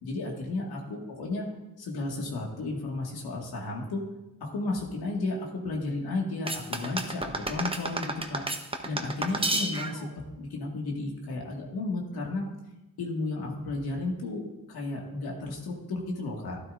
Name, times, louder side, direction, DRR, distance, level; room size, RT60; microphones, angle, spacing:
voice 1, 0.0-1.5 1.8-4.0 4.4-8.6 8.8-10.1 10.4-12.5 13.0-14.4 14.7-16.6, left 2 dB, 90° left, -1 dB, 2.1 m, -33 dB
sound 1, 6.5-10.1, right 2 dB, 15° right, 1.1 m, -31 dB
12.0 x 12.0 x 2.7 m, 1.0 s
cardioid pair, 70°, 37 cm